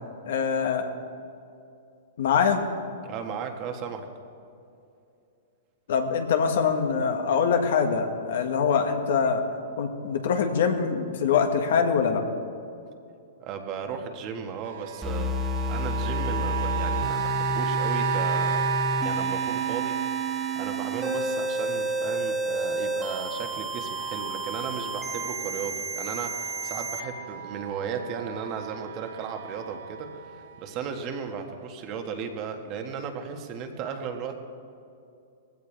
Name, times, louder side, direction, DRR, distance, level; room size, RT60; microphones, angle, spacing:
voice 1, 0.2-0.9 2.2-2.6 5.9-9.4 9.8-12.2, left 6 dB, 70° left, 5 dB, 1.6 m, -24 dB
voice 2, 3.0-4.1 13.4-18.7 19.0-19.9 20.3-34.4, right 6 dB, 35° right, 4 dB, 1.5 m, -35 dB
sound 1, 14.6-25.7 26.0-30.6 31.3-31.4, right 9 dB, 65° right, 0.5 m, -33 dB
sound 2, 15.0-27.0, equal, 10° right, 1.6 m, -30 dB
19.5 x 16.0 x 3.4 m, 2.6 s
hypercardioid pair, 145°, 0 cm